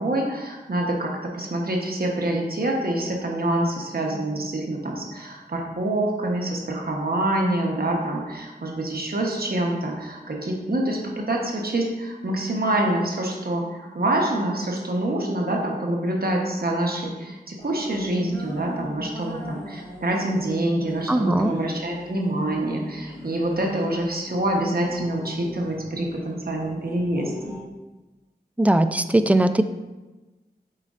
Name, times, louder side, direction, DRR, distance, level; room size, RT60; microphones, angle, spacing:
voice 1, 0.0-27.6, right 1 dB, 60° right, 0 dB, 1.1 m, -26 dB
sound 1, 17.6-27.6, left 1 dB, 20° left, 1.5 m, -40 dB
voice 2, 21.1-21.5 28.6-29.6, right 1 dB, 10° right, 10 dB, 0.3 m, -19 dB
7.5 x 5.1 x 2.5 m, 1.1 s
wide cardioid pair, 55°, 17 cm